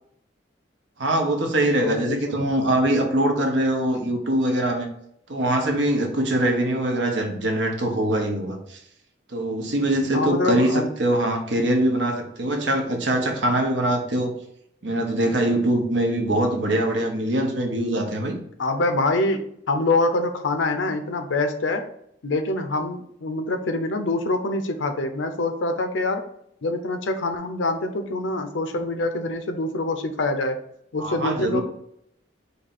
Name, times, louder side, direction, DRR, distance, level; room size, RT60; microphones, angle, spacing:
voice 1, 1.0-4.9 5.3-8.8 9.3-14.3 14.8-18.4 31.0-31.6, right 1 dB, 70° right, 3 dB, 0.9 m, -23 dB
voice 2, 1.8-2.4 10.1-10.9 18.6-19.4 19.7-21.8 22.2-26.2 26.6-30.6 30.9-31.6, left 2 dB, 90° left, 7 dB, 0.6 m, -25 dB
4.2 x 2.7 x 4.2 m, 0.72 s
head